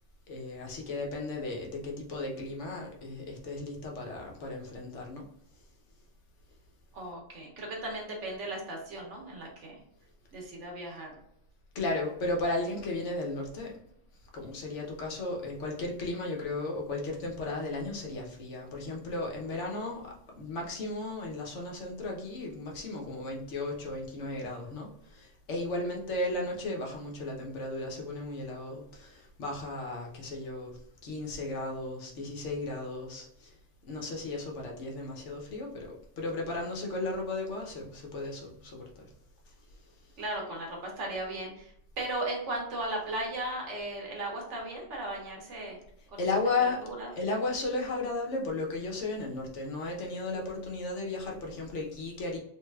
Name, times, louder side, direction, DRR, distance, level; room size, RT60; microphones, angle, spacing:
voice 1, 0.3-5.3 11.7-13.7 14.3-33.5 33.9-39.1 46.2-46.8 47.1-52.4, left 2 dB, 80° left, 0 dB, 1.2 m, -35 dB
voice 2, 6.9-9.8 10.3-11.2 40.2-45.8 46.1-46.3 46.8-47.1, right 1 dB, 85° right, -1 dB, 1.4 m, -36 dB
3.5 x 3.3 x 2.3 m, 0.76 s
omnidirectional pair, 1.2 m